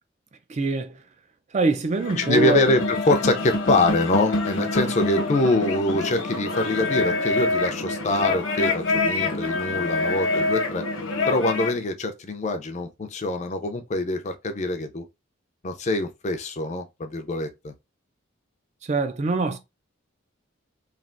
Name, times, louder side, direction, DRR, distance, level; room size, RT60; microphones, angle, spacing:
voice 1, 0.5-1.0 1.5-2.6 18.8-19.6, right 3 dB, 35° right, 0.4 m, -24 dB
sound 1, 1.9-11.8, left 3 dB, 75° left, 0.9 m, -26 dB
voice 2, 2.2-10.9 11.3-15.0 15.6-17.7, left 2 dB, 35° left, 0.4 m, -24 dB
3.2 x 2.4 x 2.5 m
head